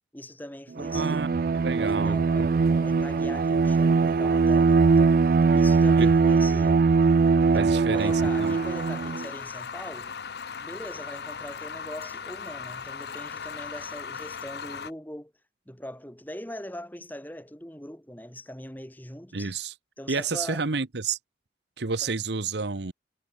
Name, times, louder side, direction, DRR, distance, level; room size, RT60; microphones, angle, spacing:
voice 1, 0.1-1.3 1.8-5.2 5.5-6.8 7.4-10.1 10.6-15.3 15.7-19.5 20.0-20.6, left 1 dB, 10° left, 2.5 m, -41 dB
Bowed string instrument, 0.8-9.3, right 4 dB, 50° right, 0.3 m, -21 dB
voice 2, 0.9-1.3 1.6-2.5 6.0-6.1 7.5-8.1 8.4-8.6 19.3-19.7 20.1-21.2 21.8-22.9, right 4 dB, 70° right, 1.0 m, -30 dB
sound 1, 7.9-14.9, left 6 dB, 65° left, 0.7 m, -38 dB
head